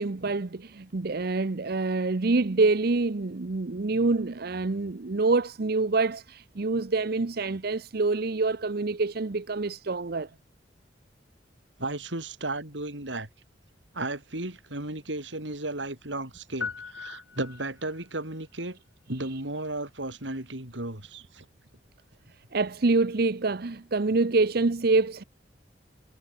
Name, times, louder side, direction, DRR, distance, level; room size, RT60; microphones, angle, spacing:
voice 1, 0.0-10.3 22.5-25.2, right 3 dB, 55° right, 0.8 m, -26 dB
voice 2, 11.8-13.3 13.9-18.8 19.1-21.4, right 2 dB, 85° right, 5.7 m, -34 dB
sound 1, 16.6-18.1, left 5 dB, 80° left, 7.3 m, -38 dB
head